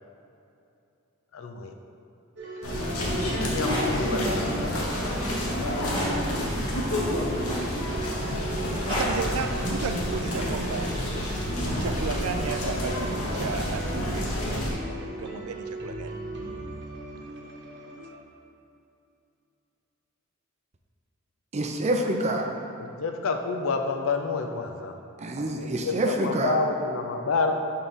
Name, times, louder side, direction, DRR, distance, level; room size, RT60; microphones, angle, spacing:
voice 1, 1.3-1.8 3.2-5.4 22.8-25.0 25.6-27.5, left 4 dB, 65° left, 5 dB, 0.5 m, -29 dB
sound 1, 2.4-18.1, right 2 dB, 55° right, 1.1 m, -38 dB
sound 2, 2.6-14.7, left 1 dB, 85° left, 1.1 m, -29 dB
sound 3, 3.6-3.9 5.9-6.2 7.4-7.9 8.9-9.2 10.6-10.8, left 1 dB, 25° left, 1.1 m, -31 dB
voice 2, 8.9-11.0 11.6-16.2, right 5 dB, 85° right, 8 dB, 0.4 m, -34 dB
voice 3, 21.5-22.5 25.2-26.6, right 1 dB, 30° right, 3 dB, 0.5 m, -27 dB
6.3 x 3.7 x 5.3 m, 2.7 s
head